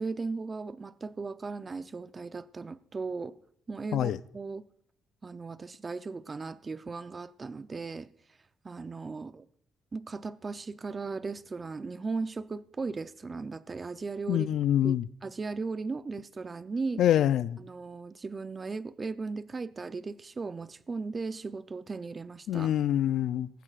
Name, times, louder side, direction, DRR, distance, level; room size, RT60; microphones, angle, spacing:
voice 1, 0.0-3.4 3.7-4.6 5.2-8.1 8.6-9.5 9.9-14.5 14.8-15.0 15.2-17.0 17.6-22.7, right 4 dB, 30° right, 0.6 m, -37 dB
voice 2, 14.3-15.1 17.0-17.6 22.5-23.5, left 11 dB, 75° left, 0.4 m, -25 dB
18.5 x 15.0 x 2.5 m
cardioid pair, 90°, 0 cm